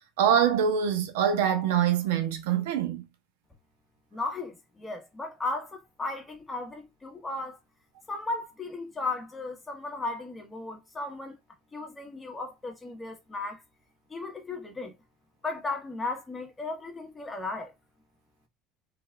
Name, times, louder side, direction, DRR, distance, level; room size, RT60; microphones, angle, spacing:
voice 1, 0.2-3.0, right 8 dB, 80° right, 0.7 m, -24 dB
voice 2, 4.1-7.6 8.1-11.3 11.7-13.6 14.1-14.9 15.4-17.7, left 3 dB, 15° left, 1.4 m, -35 dB
3.5 x 3.3 x 2.3 m
supercardioid pair, 95°, 0 cm